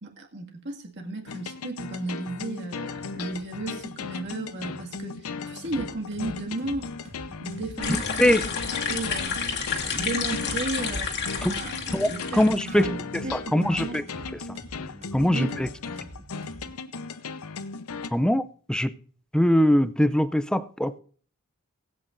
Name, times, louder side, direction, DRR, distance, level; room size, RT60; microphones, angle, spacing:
voice 1, 0.0-6.9 7.4-8.6 8.9-9.4 9.8-11.1 11.4-13.0 13.2-14.0 15.3-15.7, right 2 dB, 55° right, 1.9 m, -34 dB
sound 1, 1.3-18.1, left 4 dB, 80° left, 0.7 m, -37 dB
sound 2, 3.3-16.7, right 1 dB, 30° right, 1.4 m, -46 dB
sound 3, 7.8-12.8, left 6 dB, 50° left, 1.8 m, -30 dB
voice 2, 11.9-12.9 13.3-14.0 15.1-15.5 18.1-18.9 19.3-21.0, equal, 5° left, 0.4 m, -22 dB
19.5 x 8.5 x 2.5 m
head